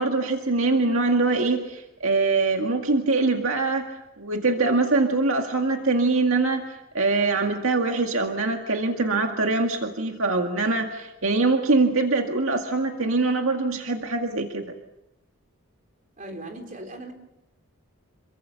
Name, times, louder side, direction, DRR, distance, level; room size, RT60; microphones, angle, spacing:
voice 1, 0.0-3.9 4.2-14.6, right 3 dB, 65° right, 3 dB, 2.0 m, -23 dB
voice 2, 16.2-17.1, right 1 dB, 35° right, 3 dB, 4.0 m, -38 dB
28.0 x 23.5 x 7.1 m, 0.93 s
head